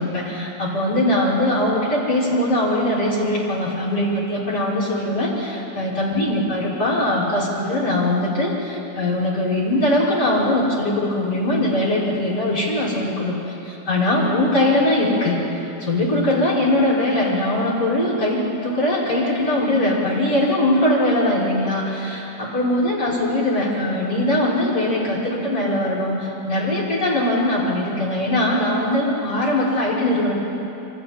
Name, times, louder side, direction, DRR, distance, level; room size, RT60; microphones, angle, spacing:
voice 1, 0.0-15.4 15.8-30.3, left 1 dB, 60° left, -8 dB, 6.1 m, -21 dB
28.5 x 24.5 x 4.3 m, 2.9 s
omnidirectional pair, 2.0 m